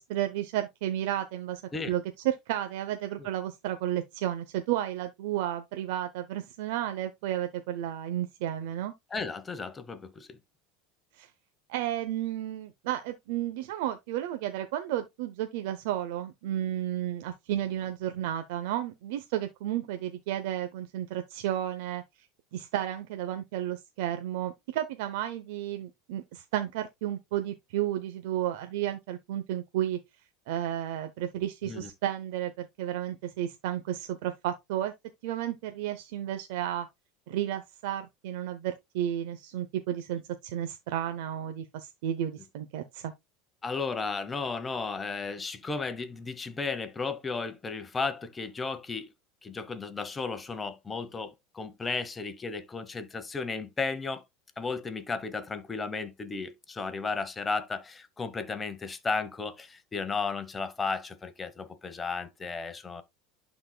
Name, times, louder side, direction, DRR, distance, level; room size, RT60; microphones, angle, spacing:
voice 1, 0.0-1.6 1.9-8.9 11.1-11.3 11.7-22.3 22.5-30.0 30.5-34.9 35.2-36.9 37.3-43.1, right 12 dB, 75° right, 0.7 m, -32 dB
voice 2, 9.1-10.4 31.6-31.9 43.6-49.1 49.4-54.2 54.6-63.0, left 4 dB, 20° left, 1.0 m, -34 dB
11.5 x 4.1 x 2.2 m
supercardioid pair, 120°, 0 cm